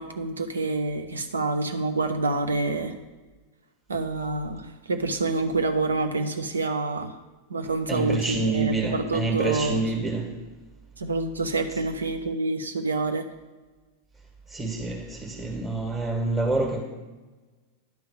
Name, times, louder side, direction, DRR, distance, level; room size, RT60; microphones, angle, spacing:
voice 1, 0.0-3.0 3.9-7.2 7.5-9.9 11.0-13.3, right 3 dB, 75° right, 0.8 m, -27 dB
voice 2, 7.9-10.3 14.5-16.8, right 3 dB, 15° right, 2.0 m, -27 dB
10.5 x 3.8 x 6.9 m
figure-of-eight pair, 90°, 0 cm